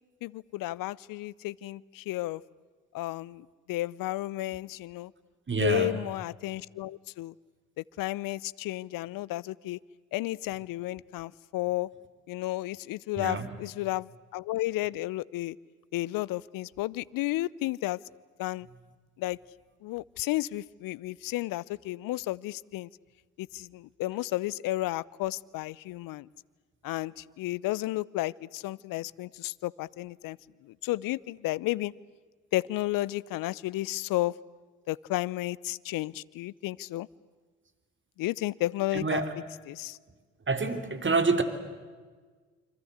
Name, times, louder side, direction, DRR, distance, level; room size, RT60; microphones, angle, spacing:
voice 1, 0.2-2.4 2.9-5.1 5.6-7.3 7.8-9.8 10.1-11.9 12.3-15.6 15.9-18.0 18.4-18.7 19.2-19.4 19.8-22.9 23.4-26.3 26.8-30.4 30.6-31.9 32.5-34.4 34.9-37.1 38.2-39.2 39.7-40.0, left 17 dB, 60° left, 23 dB, 0.8 m, -32 dB
voice 2, 5.5-6.0 13.2-13.5 38.9-39.3 40.5-41.4, right 4 dB, 30° right, 9 dB, 3.3 m, -27 dB
28.0 x 25.5 x 8.1 m, 1.5 s
hypercardioid pair, 55°, 38 cm